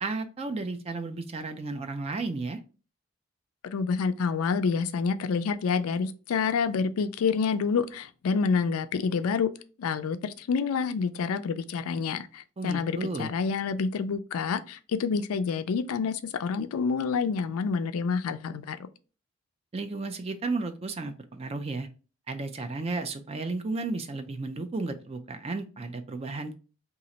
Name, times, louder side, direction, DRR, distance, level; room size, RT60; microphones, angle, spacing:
voice 1, 0.0-2.6 12.6-13.3 19.7-21.9 22.3-26.5, right 3 dB, 25° right, 0.4 m, -33 dB
voice 2, 3.6-9.5 9.8-18.9, left 5 dB, 80° left, 0.4 m, -28 dB
2.9 x 2.4 x 4.0 m
head